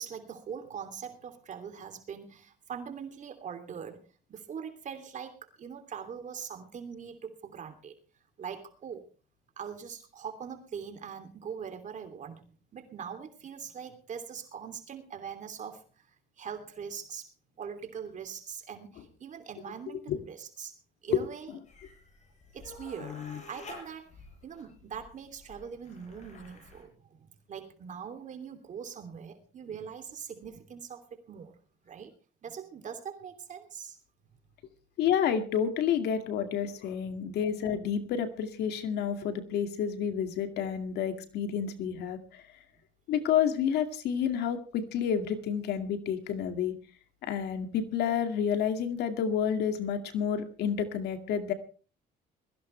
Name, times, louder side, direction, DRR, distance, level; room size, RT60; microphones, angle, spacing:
voice 1, 0.0-4.0 4.3-8.0 8.4-9.0 9.6-15.8 16.4-17.3 17.6-20.7 21.0-21.5 22.5-31.5 31.8-32.1 32.4-34.0 37.0-37.2, right 7 dB, 45° right, 7 dB, 3.0 m, -42 dB
sound 1, 21.6-26.8, left 2 dB, 45° left, 7.6 m, -50 dB
voice 2, 23.0-23.4 35.0-42.4 43.1-46.8 47.2-51.5, left 8 dB, 75° left, 8 dB, 2.3 m, -30 dB
21.5 x 16.0 x 3.4 m, 0.37 s
cardioid pair, 110°, 17 cm